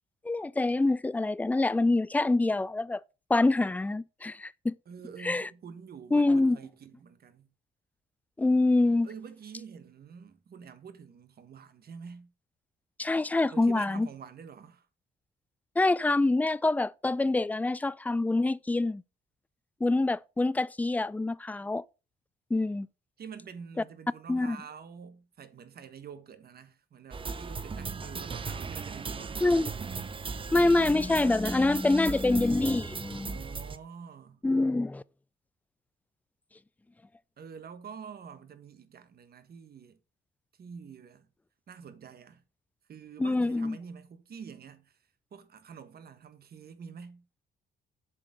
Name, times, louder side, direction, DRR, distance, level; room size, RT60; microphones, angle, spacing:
voice 1, 0.2-3.0 3.3-4.7 5.2-5.5 6.1-6.6 8.4-9.1 13.0-14.1 15.8-19.0 19.8-21.8 22.5-22.9 24.3-24.6 29.4-29.7 30.5-33.4 34.4-35.0 43.2-43.8, left 2 dB, 10° left, 0.3 m, -26 dB
voice 2, 4.9-7.5 9.0-12.3 13.5-14.9 23.2-29.8 33.3-34.4 37.4-40.0 40.6-41.3 41.7-42.4 42.9-44.9 45.3-47.2, right 6 dB, 50° right, 1.4 m, -47 dB
sound 1, 27.1-33.8, right 4 dB, 25° right, 0.6 m, -37 dB
7.6 x 4.2 x 6.3 m
cardioid pair, 90°, 20 cm